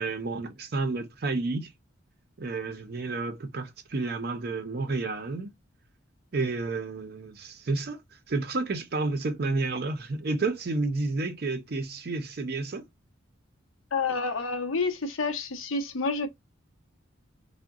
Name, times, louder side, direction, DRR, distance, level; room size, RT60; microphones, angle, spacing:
voice 1, 0.0-1.7 2.4-5.5 6.3-8.0 8.3-12.8, right 3 dB, 50° right, 0.5 m, -30 dB
voice 2, 13.9-16.3, left 4 dB, 85° left, 0.7 m, -29 dB
3.7 x 2.1 x 2.3 m
head